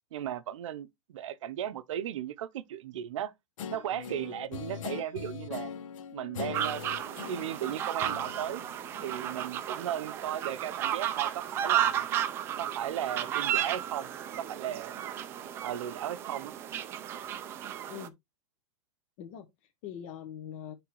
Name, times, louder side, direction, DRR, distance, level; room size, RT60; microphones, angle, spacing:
voice 1, 0.1-3.3 3.7-5.7 6.1-6.8 7.1-8.6 9.0-12.1 12.6-14.1 14.3-15.1 15.6-16.5, right 11 dB, 70° right, 0.6 m, -36 dB
Guitar, 3.6-9.4, left 7 dB, 80° left, 0.9 m, -41 dB
sound 1, 6.5-18.1, right 11 dB, 15° right, 0.4 m, -33 dB
voice 2, 19.2-20.7, left 9 dB, 30° left, 0.8 m, -43 dB
9.9 x 3.4 x 3.0 m
supercardioid pair, 175°, 17 cm